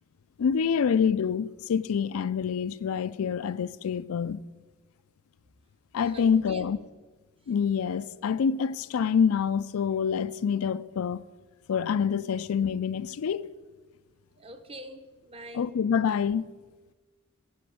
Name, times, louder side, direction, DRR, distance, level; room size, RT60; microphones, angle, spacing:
voice 1, 0.4-4.4 5.9-6.8 7.5-11.2 11.7-13.5 15.5-16.4, left 7 dB, 75° left, 0.4 m, -26 dB
voice 2, 6.0-6.7 14.4-15.7, right 1 dB, 25° right, 0.9 m, -44 dB
9.5 x 6.8 x 7.9 m
head